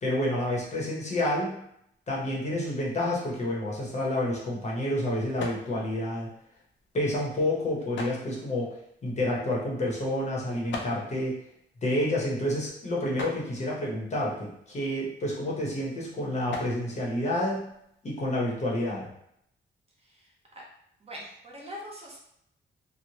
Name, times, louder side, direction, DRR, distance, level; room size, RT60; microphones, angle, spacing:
voice 1, 0.0-1.6 2.1-6.3 6.9-8.7 9.0-11.4 11.8-17.7 18.0-19.1, left 1 dB, 35° left, -4 dB, 0.7 m, -29 dB
sound 1, 3.8-18.1, left 3 dB, 75° left, 0.5 m, -46 dB
voice 2, 20.0-20.6 21.0-22.2, equal, 30° right, -3 dB, 0.6 m, -43 dB
3.0 x 2.0 x 2.7 m, 0.74 s
wide cardioid pair, 145°, 20 cm